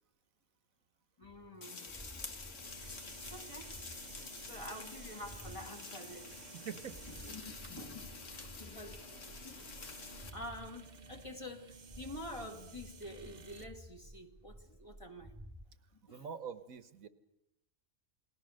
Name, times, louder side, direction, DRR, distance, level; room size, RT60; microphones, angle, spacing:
voice 1, 1.2-1.9 3.3-3.7 4.4-6.6 7.1-9.9 10.3-15.3 15.9-16.2, left 1 dB, 20° left, 2 dB, 2.4 m, -48 dB
sound 1, 1.2-5.7 6.1-10.7 11.1-11.6 11.9-15.7, equal, 5° right, 0.5 m, -54 dB
sound 2, 1.6-10.3, left 4 dB, 60° left, 2.1 m, -49 dB
sound 3, 2.6-13.7, right 4 dB, 35° right, 1.0 m, -54 dB
voice 2, 6.5-7.0 16.1-17.1, right 7 dB, 75° right, 11 dB, 1.6 m, -44 dB
29.0 x 20.0 x 6.5 m, 0.85 s
omnidirectional pair, 1.5 m